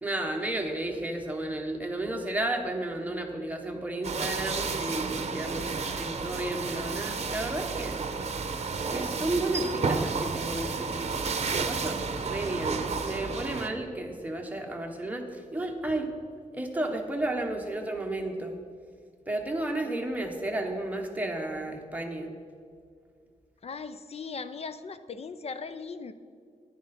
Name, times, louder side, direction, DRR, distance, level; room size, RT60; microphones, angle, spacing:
voice 1, 0.0-5.7 6.0-8.0 8.9-16.1 16.5-18.5 19.3-22.3, right 1 dB, 10° right, 2 dB, 1.2 m, -32 dB
sound 1, 4.0-13.7, right 4 dB, 50° right, 0.8 m, -31 dB
voice 2, 23.6-26.1, left 4 dB, 50° left, 12 dB, 0.6 m, -38 dB
10.5 x 9.8 x 4.3 m, 2.2 s
wide cardioid pair, 120°, 14 cm